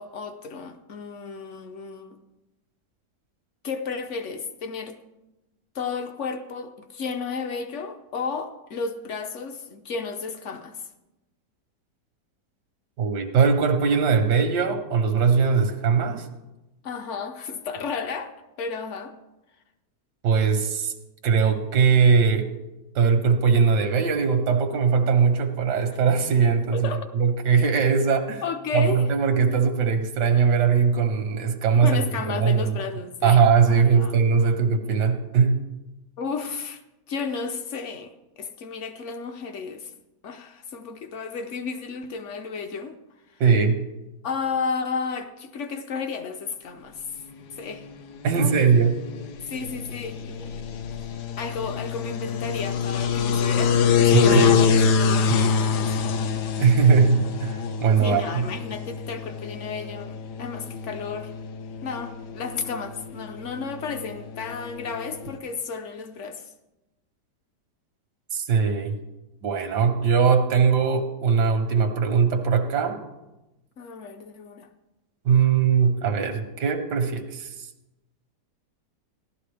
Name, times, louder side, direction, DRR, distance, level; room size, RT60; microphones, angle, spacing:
voice 1, 0.0-2.2 3.6-5.0 5.7-10.8 16.8-18.3 18.6-19.1 26.7-27.1 28.4-29.0 31.8-33.4 33.7-34.2 34.4-34.5 36.2-36.8 37.1-39.9 40.2-43.0 44.2-47.1 47.6-47.9 48.3-48.6 49.4-51.1 51.4-54.5 54.8-56.2 58.0-61.3 61.8-66.4 73.8-74.7, left 5 dB, 55° left, 8 dB, 0.9 m, -33 dB
voice 2, 13.0-16.3 20.2-20.9 21.2-22.5 22.9-26.9 27.1-28.4 28.7-32.8 33.2-35.6 43.4-43.8 48.2-49.0 54.1-54.6 56.6-58.5 68.3-68.9 69.4-73.0 75.2-77.5, right 6 dB, 85° right, 6 dB, 1.6 m, -20 dB
sound 1, 47.3-65.4, left 6 dB, 75° left, 1.3 m, -26 dB
16.0 x 11.5 x 3.4 m, 1.0 s
omnidirectional pair, 1.8 m